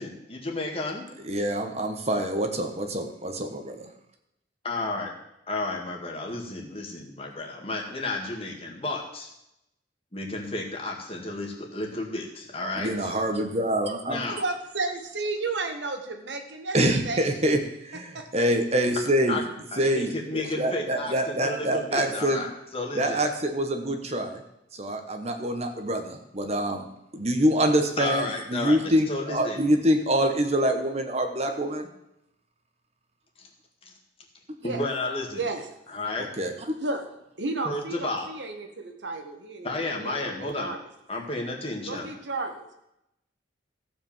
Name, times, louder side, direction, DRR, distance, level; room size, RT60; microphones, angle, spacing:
voice 1, 0.0-1.1 4.6-5.1 5.5-9.3 10.1-13.2 14.1-14.4 19.3-19.4 19.7-23.2 28.0-29.6 34.6-35.4 35.9-36.3 37.7-38.3 39.6-40.7 41.1-42.1, left 2 dB, 30° left, 1 dB, 2.0 m, -32 dB
voice 2, 1.2-3.9 12.8-14.2 16.7-17.6 17.8-19.4 19.8-22.4 22.9-24.4 24.7-26.8 27.1-31.9 36.4-36.7, right 1 dB, 35° right, 5 dB, 1.2 m, -25 dB
voice 3, 14.3-16.8 17.0-17.5 18.1-18.3 34.6-34.8 35.3-36.0 36.8-37.0 37.4-40.8 41.8-42.7, right 3 dB, 75° right, 5 dB, 1.6 m, -33 dB
15.5 x 5.2 x 7.3 m, 0.82 s
head